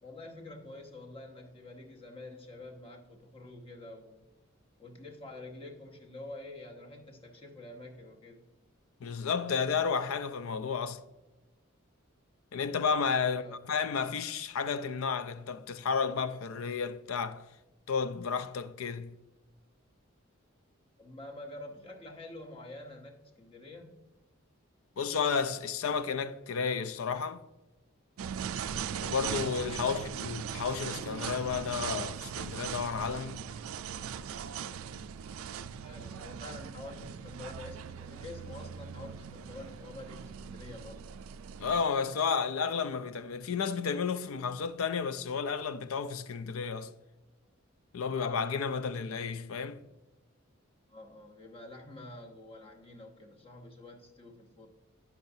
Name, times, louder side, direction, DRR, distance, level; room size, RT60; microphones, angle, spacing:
voice 1, 0.0-4.2 4.8-8.4 13.3-13.6 21.0-24.0 29.8-29.9 35.8-41.1 50.9-54.7, left 2 dB, 25° left, 1.0 m, -47 dB
voice 2, 9.0-11.0 12.5-17.5 17.9-19.2 25.0-27.4 29.0-33.4 41.6-46.9 47.9-49.8, left 6 dB, 85° left, 0.4 m, -32 dB
sound 1, 28.2-41.8, right 8 dB, 80° right, 0.3 m, -40 dB
10.5 x 5.8 x 2.7 m
head